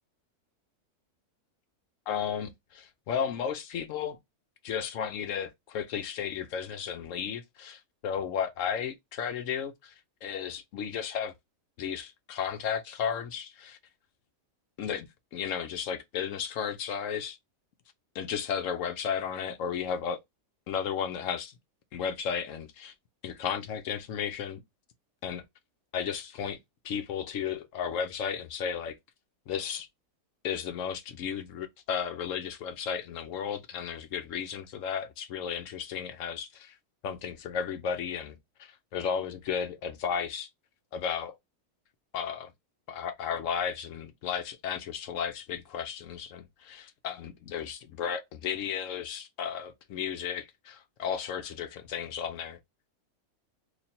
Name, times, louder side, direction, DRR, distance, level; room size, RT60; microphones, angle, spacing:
voice 1, 2.1-4.2 4.6-9.9 10.2-11.3 11.8-13.8 14.8-17.4 18.1-20.2 20.7-21.5 21.9-22.9 23.2-24.6 25.2-25.4 25.9-26.6 26.8-29.0 29.5-29.9 30.4-36.8 37.0-40.5 40.9-41.4 42.1-42.5 42.9-52.6, left 7 dB, 65° left, 0.9 m, -34 dB
3.1 x 2.4 x 4.1 m
omnidirectional pair, 1.6 m